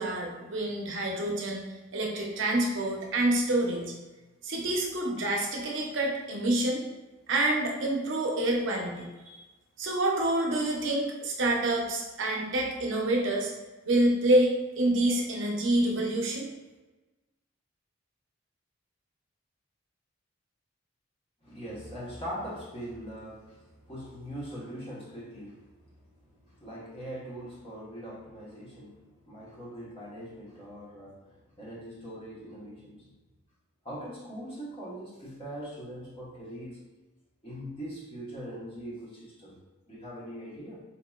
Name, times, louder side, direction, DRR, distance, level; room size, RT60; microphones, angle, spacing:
voice 1, 0.0-1.6 1.9-3.9 4.4-6.8 7.3-9.4 9.8-13.5 13.9-16.5, right 1 dB, 65° right, -1 dB, 0.6 m, -27 dB
voice 2, 21.4-25.8 26.3-33.1 33.8-36.8 37.4-39.6 39.9-40.8, equal, 30° left, -7 dB, 1.1 m, -41 dB
4.1 x 2.8 x 2.3 m, 1.2 s
head